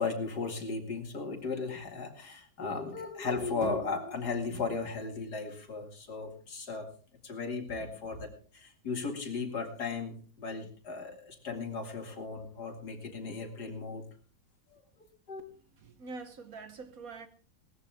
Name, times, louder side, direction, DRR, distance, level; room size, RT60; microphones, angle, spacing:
voice 1, 0.0-6.9 7.2-14.0 14.7-14.8 15.3-15.4, left 4 dB, 60° left, 2.7 m, -36 dB
voice 2, 15.8-17.3, right 4 dB, 55° right, 1.4 m, -44 dB
18.5 x 13.5 x 3.4 m
omnidirectional pair, 2.0 m